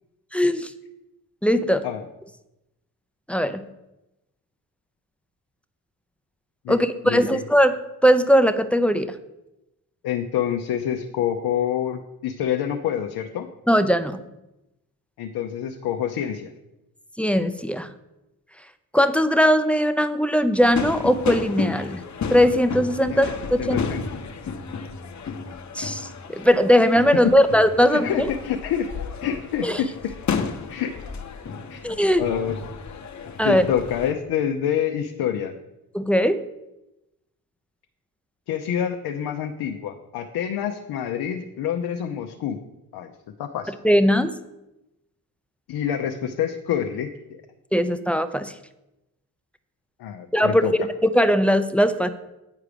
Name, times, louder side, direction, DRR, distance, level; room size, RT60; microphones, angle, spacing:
voice 1, 0.3-0.7 1.4-1.8 3.3-3.6 6.7-7.8 8.0-9.1 13.7-14.2 17.2-17.9 18.9-22.0 22.3-23.8 25.7-28.3 29.6-29.8 31.8-32.2 33.4-33.6 35.9-36.4 43.8-44.3 47.7-48.5 50.3-50.7 51.0-52.1, equal, 5° left, 10 dB, 0.6 m, -19 dB
voice 2, 7.0-7.4 10.0-13.5 15.2-16.5 23.1-23.2 23.6-24.0 27.9-28.9 29.2-30.1 30.7-30.9 31.7-31.9 32.2-32.6 33.4-35.5 38.5-42.6 42.9-43.1 43.4-43.7 45.7-47.4 50.0-50.7, left 9 dB, 70° left, 4 dB, 0.7 m, -27 dB
sound 1, 20.6-34.1, left 5 dB, 45° left, 1.0 m, -32 dB
9.3 x 4.8 x 5.0 m, 0.93 s
supercardioid pair, 50°, 40 cm